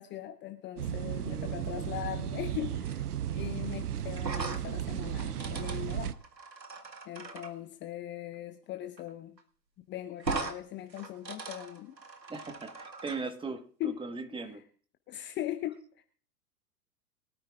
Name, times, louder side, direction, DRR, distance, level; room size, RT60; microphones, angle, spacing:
voice 1, 0.0-3.0 3.3-6.1 7.1-9.4 9.9-11.9 13.8-14.0 14.4-14.6 15.1-16.0, left 13 dB, 20° left, 7 dB, 0.8 m, -40 dB
sound 1, 0.8-6.1, right 10 dB, 65° right, 1.0 m, -35 dB
voice 2, 1.2-1.9 12.3-14.6, right 4 dB, 10° right, 7 dB, 1.4 m, -39 dB
sound 2, 4.2-7.5 9.0-9.1 9.4-9.5 10.2-10.6 10.9-13.2, right 3 dB, 90° right, 1.8 m, -39 dB
23.0 x 13.0 x 2.5 m, 0.43 s
figure-of-eight pair, 100°, 50 cm